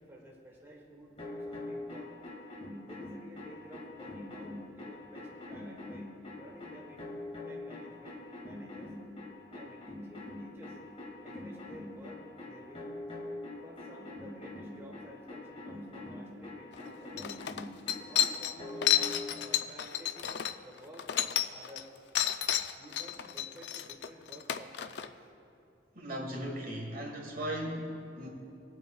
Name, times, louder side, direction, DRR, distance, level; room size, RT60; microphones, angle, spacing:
voice 1, 0.0-2.2 2.8-6.1 6.4-8.9 9.5-10.8 11.2-12.9 13.6-17.4 18.0-18.9 19.3-21.9 22.8-25.3, equal, 15° right, -3 dB, 1.2 m, -52 dB
sound 1, 1.2-19.3, left 2 dB, 35° left, 2.2 m, -43 dB
sound 2, 16.7-16.8 17.2-21.8 22.1-25.1, left 11 dB, 70° left, 0.4 m, -31 dB
voice 2, 25.9-28.3, equal, 50° right, 1 dB, 1.5 m, -37 dB
20.0 x 8.5 x 2.4 m, 2.5 s
head